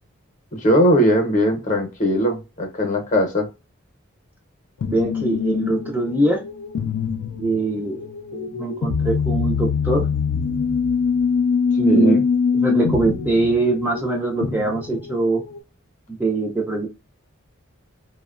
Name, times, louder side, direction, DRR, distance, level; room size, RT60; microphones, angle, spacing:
voice 1, 0.6-3.5 11.9-12.2, equal, 35° left, 3 dB, 0.7 m, -19 dB
sound 1, 4.8-15.6, left 6 dB, 90° left, 0.4 m, -24 dB
voice 2, 4.9-6.4 7.4-8.0 8.3-10.1 11.8-12.2 12.5-15.4 16.1-16.9, right 2 dB, 10° right, -1 dB, 0.4 m, -22 dB
2.8 x 2.1 x 2.3 m, 0.27 s
head